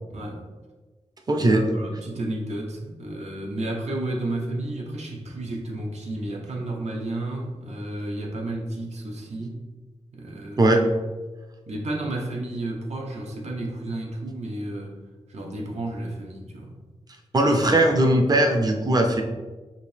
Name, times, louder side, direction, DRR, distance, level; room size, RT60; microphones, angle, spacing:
voice 1, 0.1-0.4 1.4-9.6 10.1-10.7 11.7-14.9 15.3-16.7 17.4-17.9, right 1 dB, 75° right, 0 dB, 0.8 m, -32 dB
voice 2, 1.3-1.6 10.6-10.8 17.3-19.2, right 1 dB, 35° right, 3 dB, 0.6 m, -19 dB
4.9 x 2.7 x 3.3 m, 1.3 s
wide cardioid pair, 100°, 11 cm